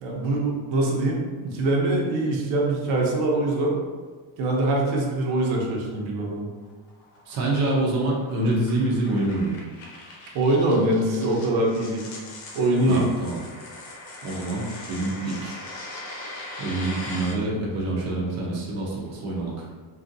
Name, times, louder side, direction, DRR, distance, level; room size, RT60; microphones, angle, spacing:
voice 1, 0.0-3.7 4.4-6.5 10.3-12.0 12.5-13.1, right 2 dB, 85° right, -2 dB, 0.8 m, -23 dB
sound 1, 6.6-17.3, left 2 dB, 70° left, 0.8 m, -40 dB
voice 2, 7.3-9.5 12.9-13.4 14.2-15.6 16.6-19.6, right 2 dB, 35° right, -5 dB, 0.6 m, -26 dB
2.7 x 2.5 x 2.6 m, 1.4 s
cardioid pair, 170°, 47 cm